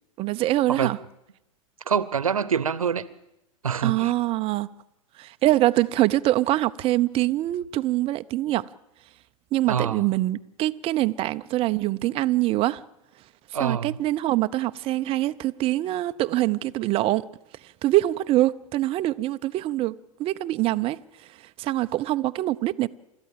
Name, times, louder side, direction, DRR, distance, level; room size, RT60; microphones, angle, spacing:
voice 1, 0.2-1.0 3.8-4.7 5.2-8.7 9.5-12.8 13.6-17.3 17.8-21.0 21.6-22.9, right 16 dB, 35° right, 0.7 m, -24 dB
voice 2, 1.9-3.0 3.6-4.1 9.7-10.1 13.5-14.0, right 7 dB, 85° right, 1.0 m, -25 dB
29.0 x 13.5 x 7.5 m
hypercardioid pair, 100°, 17 cm